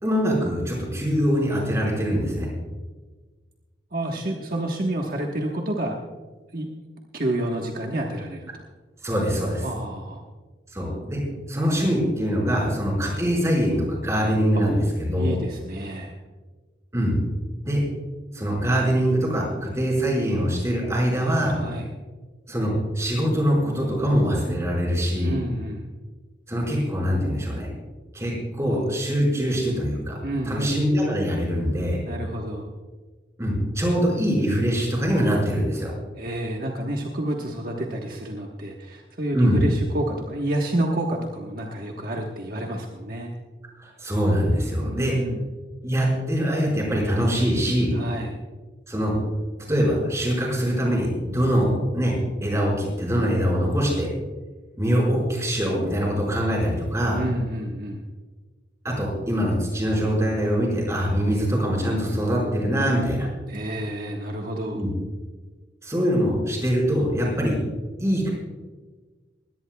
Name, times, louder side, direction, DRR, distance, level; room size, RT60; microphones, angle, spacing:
voice 1, 0.0-2.5 9.0-9.6 10.7-11.2 11.5-15.4 16.9-17.2 17.6-17.8 18.3-21.6 22.5-25.4 26.5-27.7 28.1-30.2 30.4-32.0 33.4-35.9 39.3-39.6 43.8-45.1 45.8-47.9 48.9-49.1 49.7-52.1 52.4-54.1 54.8-57.2 58.8-63.3 64.7-64.9 65.8-67.6 68.0-68.3, equal, 15° right, -2 dB, 5.1 m, -23 dB
voice 2, 3.9-6.0 6.5-6.7 7.1-8.6 9.6-10.2 12.7-12.8 15.2-16.2 21.5-21.9 25.2-25.9 30.2-30.7 32.1-32.7 36.2-43.3 44.8-45.4 47.9-48.3 57.1-58.0 63.5-64.8, right 1 dB, 55° right, 0 dB, 1.3 m, -29 dB
21.5 x 17.0 x 2.3 m, 1.3 s
head